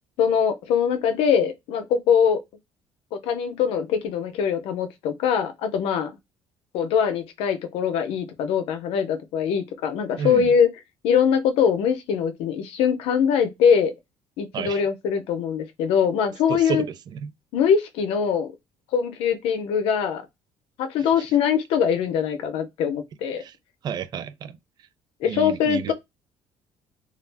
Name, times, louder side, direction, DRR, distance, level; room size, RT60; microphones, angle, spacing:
voice 1, 0.2-2.4 3.1-6.2 6.7-10.7 11.0-13.9 14.4-16.8 17.5-18.5 18.9-20.2 20.8-23.4 25.2-25.9, left 7 dB, 85° left, 0.6 m, -22 dB
voice 2, 10.2-10.5 14.5-14.8 16.5-16.9 17.1-17.3 23.4-23.5 23.8-24.6 25.2-25.9, right 8 dB, 45° right, 0.4 m, -30 dB
2.3 x 2.0 x 3.3 m
cardioid pair, 125°, 10 cm